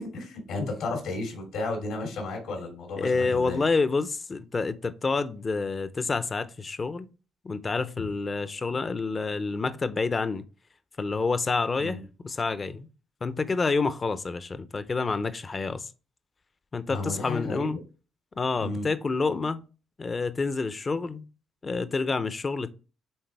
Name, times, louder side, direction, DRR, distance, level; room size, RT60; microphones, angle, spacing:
voice 1, 0.0-3.6 11.8-12.0 16.9-17.7 18.6-18.9, left 2 dB, 85° left, 3.0 m, -33 dB
voice 2, 3.0-7.1 7.4-10.4 11.0-12.0 12.2-12.9 13.2-15.9 16.7-17.8 18.4-19.6 20.0-21.3 21.6-22.7, left 4 dB, 30° left, 0.6 m, -28 dB
8.8 x 3.6 x 3.4 m
cardioid pair, 90°, 0 cm